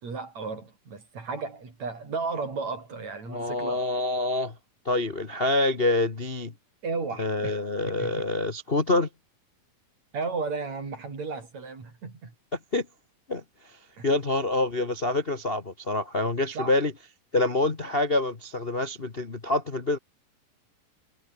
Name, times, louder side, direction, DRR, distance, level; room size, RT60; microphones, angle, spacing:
voice 1, 0.0-3.9 6.8-7.6 8.0-8.1 10.1-12.3 14.0-14.1 16.5-16.7, right 4 dB, 50° right, 6.4 m, -34 dB
voice 2, 3.3-4.5 4.8-6.5 7.2-9.1 12.7-12.8 13.3-13.4 14.0-16.9 17.3-20.0, left 2 dB, 75° left, 0.5 m, -26 dB
omnidirectional pair, 4.0 m